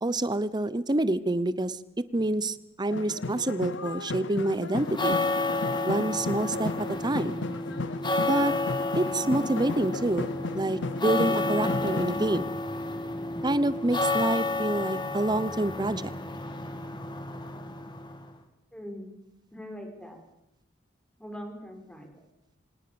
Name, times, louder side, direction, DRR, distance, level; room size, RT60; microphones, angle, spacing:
voice 1, 0.0-1.8 2.1-5.2 5.8-7.4 8.2-8.5 8.9-10.3 10.6-12.5 13.4-16.1, right 2 dB, 20° right, 17 dB, 0.8 m, -27 dB
sound 1, 2.9-12.4, left 3 dB, 70° left, 0.9 m, -35 dB
sound 2, 4.7-18.3, left 2 dB, 25° left, 2.5 m, -31 dB
voice 2, 18.7-19.1 19.5-20.2 21.2-22.2, equal, 5° left, 3 dB, 5.2 m, -42 dB
25.0 x 19.0 x 7.0 m, 0.86 s
head